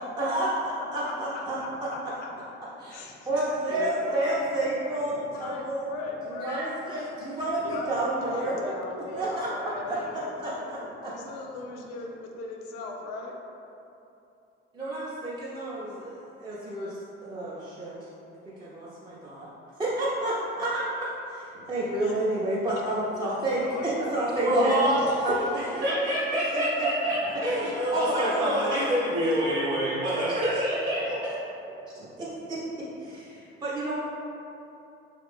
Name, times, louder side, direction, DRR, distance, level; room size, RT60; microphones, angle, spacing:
voice 1, 0.0-1.6 2.8-5.9 6.3-8.6 9.1-9.5 9.9-10.0 10.4-10.5 11.0-11.1 14.7-17.9 18.5-19.5 19.8-24.8 25.2-26.9 27.6-28.8 30.0-30.6 31.0-31.2 31.9-33.9, right 1 dB, 15° right, -9 dB, 0.6 m, -30 dB
voice 2, 1.6-2.3 2.9-3.3 3.7-4.2 5.3-6.5 7.6-13.3 22.0-22.2 23.5-24.1, left 3 dB, 60° left, 1 dB, 0.5 m, -38 dB
voice 3, 24.4-31.3, right 1 dB, 80° right, -11 dB, 0.8 m, -26 dB
3.1 x 2.5 x 3.3 m, 2.8 s
hypercardioid pair, 50°, 30 cm